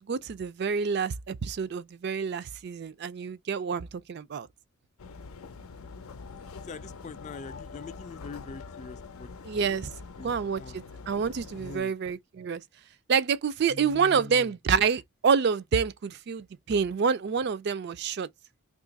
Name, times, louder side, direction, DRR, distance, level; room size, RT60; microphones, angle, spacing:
voice 1, 0.1-4.5 9.4-9.9 10.2-12.6 13.1-18.3, right 6 dB, 50° right, 0.3 m, -28 dB
sound 1, 5.0-11.8, left 4 dB, 90° left, 0.6 m, -44 dB
voice 2, 6.7-9.7 10.2-10.8 11.6-11.9 13.7-14.5, left 4 dB, 35° left, 0.3 m, -43 dB
2.9 x 2.4 x 3.9 m
head